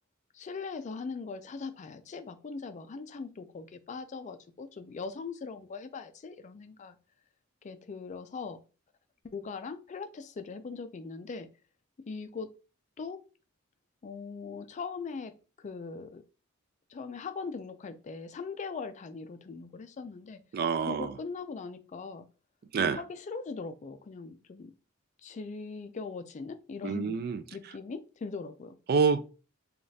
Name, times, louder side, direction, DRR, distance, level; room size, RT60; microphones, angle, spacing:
voice 1, 0.3-7.0 7.6-8.6 9.2-11.5 12.1-12.5 13.0-13.3 14.0-16.2 16.9-20.4 20.8-22.3 22.8-24.7 25.2-27.2 27.5-28.8, left 4 dB, 35° left, 0.4 m, -40 dB
voice 2, 20.5-21.1 22.7-23.0 26.8-27.4 28.9-29.2, right 5 dB, 50° right, 0.3 m, -27 dB
5.0 x 2.4 x 2.7 m
head